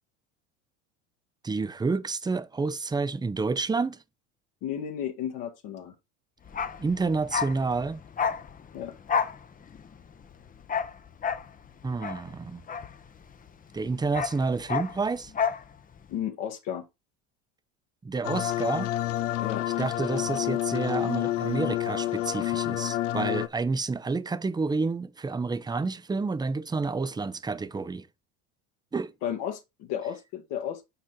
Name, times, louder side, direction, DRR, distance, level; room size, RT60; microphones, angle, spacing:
voice 1, 1.4-4.0 6.8-8.0 11.8-12.6 13.7-15.3 18.0-18.9 19.8-28.1 28.9-29.1, right 4 dB, 10° right, 0.6 m, -29 dB
voice 2, 4.6-5.9 8.7-8.9 16.1-16.8 19.4-19.7 29.2-30.8, left 9 dB, 60° left, 1.5 m, -33 dB
Bark, 6.5-13.5 13.8-15.7 15.9-16.1, left 6 dB, 20° left, 0.8 m, -31 dB
sound 1, 18.2-23.5, left 14 dB, 85° left, 0.7 m, -29 dB
8.8 x 4.3 x 3.8 m
supercardioid pair, 90°, 37 cm